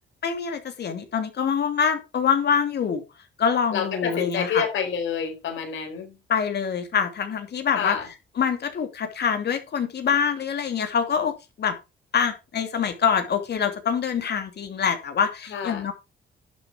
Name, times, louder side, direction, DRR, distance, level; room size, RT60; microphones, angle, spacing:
voice 1, 0.2-3.0 3.4-4.6 6.3-8.0 8.4-11.8 12.1-15.9, left 7 dB, 55° left, 2.9 m, -25 dB
voice 2, 3.7-6.2 7.8-8.1 15.5-15.8, left 7 dB, 75° left, 4.5 m, -28 dB
11.5 x 7.5 x 4.6 m
cardioid pair, 90°, 20 cm